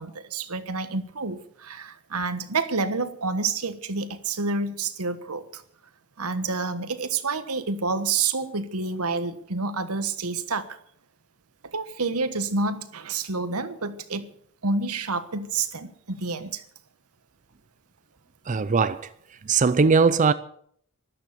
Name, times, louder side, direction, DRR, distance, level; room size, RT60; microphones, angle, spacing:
voice 1, 0.0-5.6 6.2-10.8 11.6-14.3 14.6-16.6, right 4 dB, 85° right, 1.3 m, -29 dB
voice 2, 18.5-19.1 19.4-20.3, right 4 dB, 35° right, 0.5 m, -20 dB
13.5 x 12.5 x 6.8 m
head